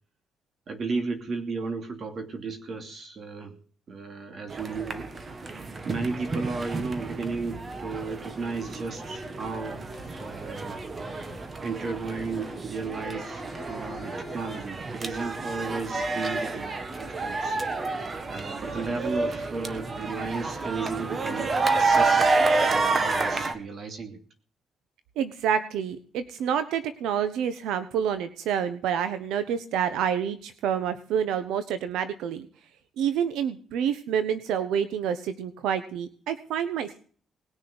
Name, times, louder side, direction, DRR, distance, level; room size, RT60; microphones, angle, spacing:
voice 1, 0.7-3.6 3.9-5.1 5.8-9.8 10.2-10.8 11.6-17.6 18.3-21.5 21.8-24.2, right 4 dB, 50° right, 6 dB, 2.7 m, -34 dB
sound 1, 4.5-23.5, right 3 dB, 35° right, 1.6 m, -29 dB
sound 2, 9.9-10.6 11.0-11.7 12.1-12.8 13.2-14.8, left 2 dB, 5° left, 4.0 m, -46 dB
voice 2, 25.2-32.5 33.0-37.0, right 8 dB, 90° right, 11 dB, 1.2 m, -28 dB
20.0 x 6.6 x 7.9 m, 0.44 s
cardioid pair, 100°, 0 cm